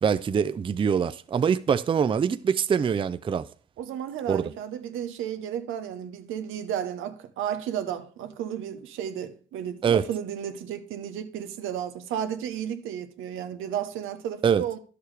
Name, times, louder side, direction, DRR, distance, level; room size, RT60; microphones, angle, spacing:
voice 1, 0.0-3.5 4.3-4.4 9.8-10.0 14.4-14.6, right 7 dB, 25° right, 0.4 m, -24 dB
voice 2, 3.8-14.8, right 9 dB, 90° right, 0.8 m, -33 dB
11.0 x 6.8 x 3.2 m
cardioid pair, 90°, 20 cm